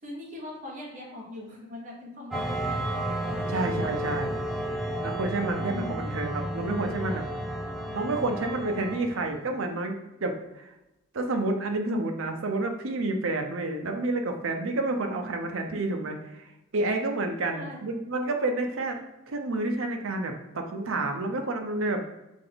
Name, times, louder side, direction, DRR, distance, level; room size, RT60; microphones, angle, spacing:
voice 1, 0.0-4.5 5.6-6.0 15.0-15.3 17.5-18.1, left 1 dB, 40° right, -2 dB, 1.0 m, -42 dB
sound 1, 2.3-9.4, right 1 dB, ahead, 0.4 m, -32 dB
voice 2, 3.4-4.3 5.0-7.3 7.9-10.7 11.1-16.5 16.7-19.0 19.3-22.0, right 2 dB, 75° right, 4 dB, 0.6 m, -29 dB
3.6 x 3.3 x 3.9 m, 0.95 s
head